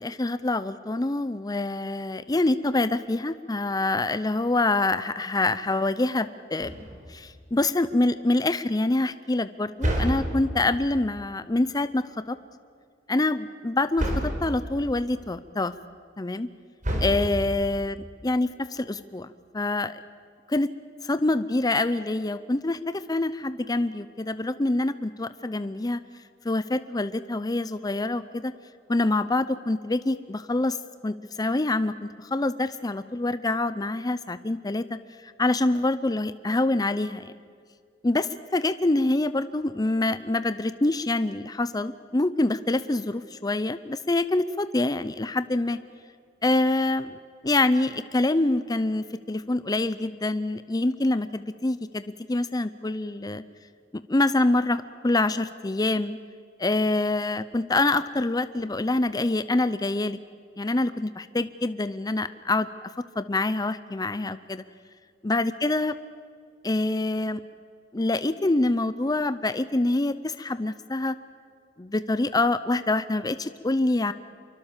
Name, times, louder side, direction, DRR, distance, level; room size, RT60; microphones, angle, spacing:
voice 1, 0.0-12.4 13.1-15.7 16.2-16.5 17.0-18.0 18.2-19.3 19.5-20.0 20.5-20.7 21.0-26.0 26.4-28.5 28.9-30.8 31.0-35.0 35.4-37.3 38.0-45.8 46.4-47.2 47.4-53.4 54.1-56.2 56.6-60.2 60.6-62.7 63.2-64.6 65.2-65.9 66.6-67.4 67.9-71.2 71.8-74.1, left 2 dB, 20° left, 13 dB, 0.6 m, -26 dB
sound 1, 6.6-7.3 9.8-10.7 14.0-14.6 16.8-17.7, equal, 45° right, 4.8 m, -28 dB
26.0 x 23.5 x 7.3 m, 2.1 s
head